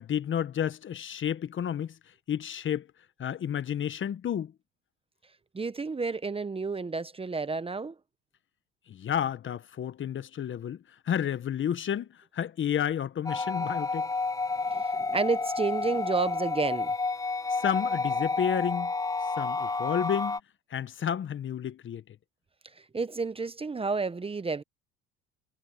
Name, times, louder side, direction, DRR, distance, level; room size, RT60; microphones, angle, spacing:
voice 1, 0.0-2.0 2.3-2.9 3.2-4.5 8.9-14.1 17.5-18.9 19.2-20.4 20.7-22.0, left 9 dB, 40° left, 1.2 m, -31 dB
voice 2, 5.5-7.9 14.7-16.9 22.8-24.6, right 4 dB, 20° right, 1.0 m, -31 dB
sound 1, 13.3-20.4, left 3 dB, 10° left, 1.0 m, -30 dB
supercardioid pair, 85°, 30 cm